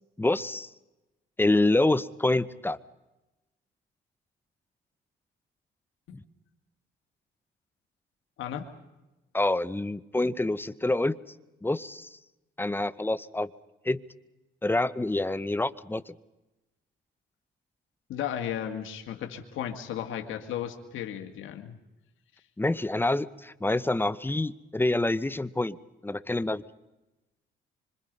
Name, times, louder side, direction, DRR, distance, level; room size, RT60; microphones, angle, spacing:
voice 1, 0.2-0.7 1.4-2.8 6.1-6.2 9.3-11.2 11.6-12.1 12.6-13.5 13.8-14.0 14.6-16.1 22.6-25.8 26.0-26.6, left 2 dB, 10° left, 17 dB, 0.9 m, -27 dB
voice 2, 8.4-8.7 18.1-21.8, left 10 dB, 80° left, 4 dB, 2.1 m, -35 dB
25.5 x 25.5 x 5.4 m, 1.0 s
cardioid pair, 90°, 20 cm